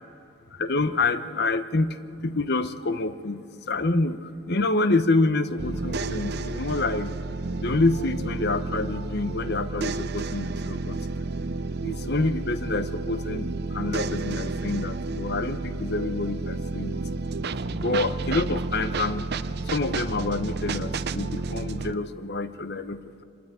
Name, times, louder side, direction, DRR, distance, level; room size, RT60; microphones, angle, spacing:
voice 1, 0.5-2.0 2.2-7.2 7.6-11.0 11.8-17.0 17.8-19.3 19.6-23.2, left 2 dB, 55° left, 11 dB, 0.9 m, -27 dB
sound 1, 5.6-21.9, right 3 dB, 50° right, 0.6 m, -31 dB
27.0 x 12.5 x 9.2 m, 2.8 s
head